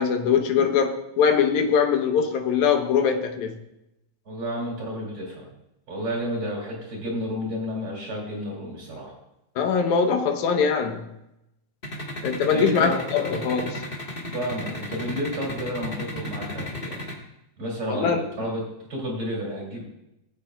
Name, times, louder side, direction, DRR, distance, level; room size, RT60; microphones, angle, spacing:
voice 1, 0.0-3.6 9.6-11.1 12.2-13.9 17.9-18.2, left 6 dB, 75° left, 4 dB, 2.2 m, -22 dB
voice 2, 4.2-5.5 5.9-9.1 12.5-12.9 14.3-17.1 17.6-18.6 18.9-19.8, equal, 45° right, -3 dB, 3.2 m, -31 dB
sound 1, 11.8-17.1, left 1 dB, 40° left, 0.7 m, -33 dB
17.5 x 8.3 x 2.3 m, 0.88 s
omnidirectional pair, 3.5 m